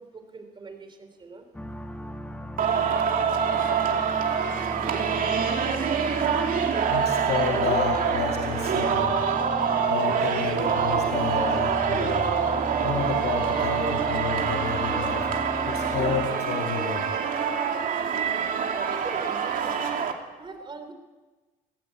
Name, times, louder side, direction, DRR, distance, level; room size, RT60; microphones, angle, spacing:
voice 1, 0.0-1.4 18.8-19.8 20.4-20.9, right 4 dB, 30° right, 6 dB, 3.5 m, -42 dB
sound 1, 1.5-16.3, left 1 dB, 5° left, 1.8 m, -36 dB
Singing, 2.6-20.1, right 7 dB, 55° right, 2.5 m, -25 dB
voice 2, 6.9-9.2 9.9-12.2 12.8-15.3 15.7-17.1, left 7 dB, 70° left, 1 dB, 2.5 m, -30 dB
18.0 x 17.0 x 8.5 m, 1.3 s
cardioid pair, 110°, 17 cm